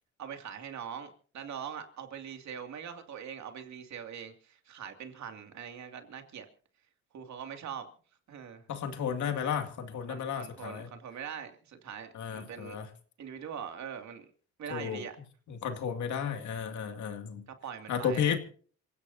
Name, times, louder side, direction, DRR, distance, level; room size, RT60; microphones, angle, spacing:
voice 1, 0.2-6.5 7.1-7.9 8.3-8.6 10.1-12.8 13.2-14.2 14.6-15.1 17.6-18.4, right 8 dB, 65° right, 2.6 m, -42 dB
voice 2, 8.7-10.9 12.1-12.9 14.7-15.0 15.5-17.5 17.9-18.4, left 7 dB, 70° left, 2.5 m, -33 dB
27.5 x 16.5 x 2.8 m
cardioid pair, 90°, 30 cm